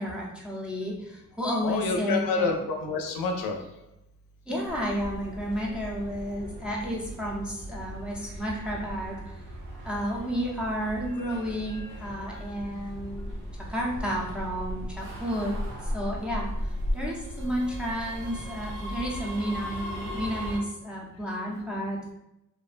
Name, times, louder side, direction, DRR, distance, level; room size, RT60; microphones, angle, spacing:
voice 1, 0.0-2.6 4.5-9.3 9.8-13.3 13.7-15.6 15.8-22.0, equal, 5° right, -4 dB, 0.4 m, -32 dB
voice 2, 1.6-3.6 12.3-12.4, left 4 dB, 80° left, 3 dB, 0.5 m, -28 dB
sound 1, 4.7-20.6, equal, 90° right, 0.7 m, -37 dB
2.4 x 2.1 x 2.4 m, 0.86 s
cardioid pair, 115°, 34 cm